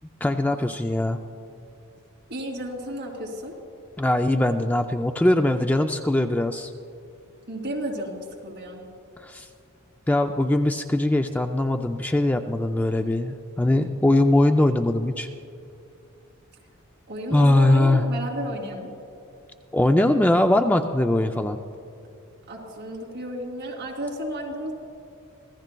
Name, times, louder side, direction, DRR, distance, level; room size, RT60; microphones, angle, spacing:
voice 1, 0.2-1.2 4.0-6.7 9.2-9.5 10.1-15.3 17.3-18.1 19.7-21.6, left 1 dB, 10° left, 6 dB, 0.3 m, -21 dB
voice 2, 2.3-3.5 7.5-8.8 17.1-18.9 22.5-24.7, right 1 dB, 55° right, -2 dB, 2.8 m, -32 dB
25.5 x 15.5 x 2.2 m, 2.6 s
head